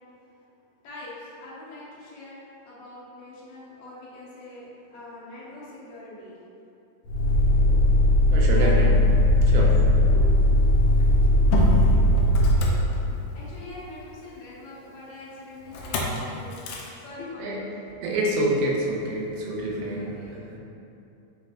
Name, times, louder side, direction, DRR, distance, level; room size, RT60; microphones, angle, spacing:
voice 1, 0.8-2.4 2.7-6.4 8.5-8.9 9.5-9.7 13.3-16.7 16.9-17.7 19.9-20.3, left 2 dB, 65° left, -9 dB, 1.7 m, -43 dB
Motor vehicle (road), 7.1-13.5 15.7-16.2 16.5-16.9, left 1 dB, 80° left, 1.9 m, -19 dB
voice 2, 8.3-8.9 9.4-9.8 10.1-10.3 17.4-17.6 18.0-20.1 20.5-20.6, right 2 dB, 80° right, -2 dB, 2.0 m, -27 dB
4.7 x 3.3 x 2.3 m, 2.7 s
omnidirectional pair, 3.5 m